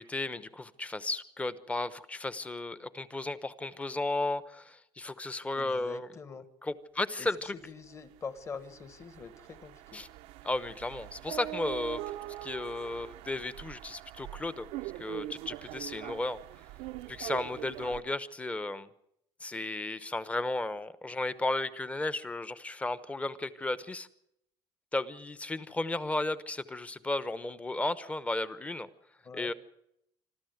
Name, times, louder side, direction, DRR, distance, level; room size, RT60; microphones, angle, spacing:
voice 1, 0.0-6.1 6.6-7.6 9.9-10.1 10.4-12.1 12.4-14.7 15.0-16.4 17.1-18.9 19.4-24.1 24.9-28.9 29.3-29.5, left 2 dB, 15° left, 14 dB, 0.9 m, -34 dB
voice 2, 5.6-6.5 7.2-7.3 7.6-10.0 29.2-29.5, left 5 dB, 30° left, 11 dB, 1.5 m, -44 dB
sound 1, 7.8-8.0 8.3-18.0, right 15 dB, 90° right, 0.8 m, -43 dB
26.0 x 13.0 x 8.0 m, 0.76 s
cardioid pair, 135°, 10 cm